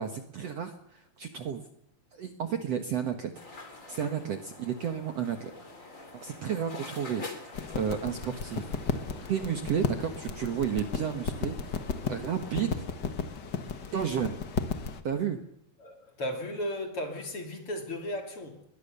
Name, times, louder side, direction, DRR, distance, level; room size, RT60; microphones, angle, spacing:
voice 1, 0.0-1.6 2.1-3.3 3.9-5.5 6.1-7.3 7.7-8.7 9.3-11.6 12.1-12.9 13.9-14.4 15.0-15.4, right 8 dB, 55° right, 6 dB, 2.0 m, -32 dB
sound 1, 3.3-12.7, left 3 dB, 20° left, 3.4 m, -47 dB
sound 2, 7.5-15.0, left 5 dB, 60° left, 1.1 m, -34 dB
voice 2, 15.8-18.7, left 1 dB, 40° left, 4 dB, 3.9 m, -35 dB
22.0 x 21.5 x 6.8 m, 0.77 s
omnidirectional pair, 4.2 m